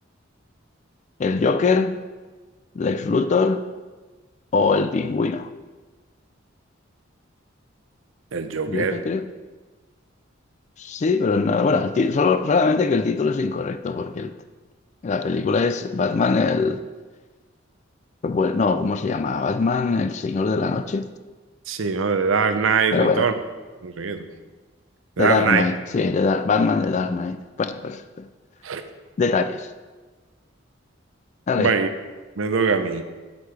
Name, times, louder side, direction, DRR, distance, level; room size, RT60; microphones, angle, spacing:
voice 1, 1.2-2.0 2.8-3.6 4.5-5.5 8.7-9.3 10.8-14.3 15.0-16.8 18.2-21.1 22.9-23.3 25.2-28.3 29.2-29.7 31.5-31.7, left 4 dB, 35° left, 0.3 m, -22 dB
voice 2, 8.3-9.0 21.7-23.3 23.8-24.3 25.2-25.6 28.6-28.8 31.6-31.9 32.4-33.0, right 5 dB, 85° right, 0.6 m, -22 dB
8.4 x 8.0 x 3.3 m
head